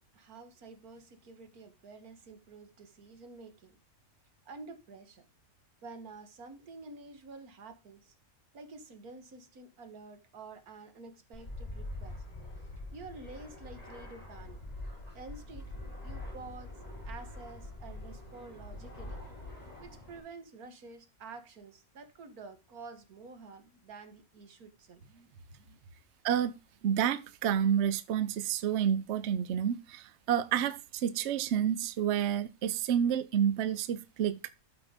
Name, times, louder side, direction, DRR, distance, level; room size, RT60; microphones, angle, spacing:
voice 1, 0.0-3.7 4.5-5.3 5.8-8.1 8.5-12.2 12.9-14.6 15.2-15.7 16.0-16.7 17.1-19.2 19.8-25.8, right 3 dB, 90° right, 1.9 m, -49 dB
Fixed-wing aircraft airplane, 11.3-20.2, left 2 dB, 25° left, 4.5 m, -44 dB
voice 2, 26.8-34.4, right 9 dB, 60° right, 0.9 m, -29 dB
12.5 x 5.0 x 5.1 m
omnidirectional pair, 1.5 m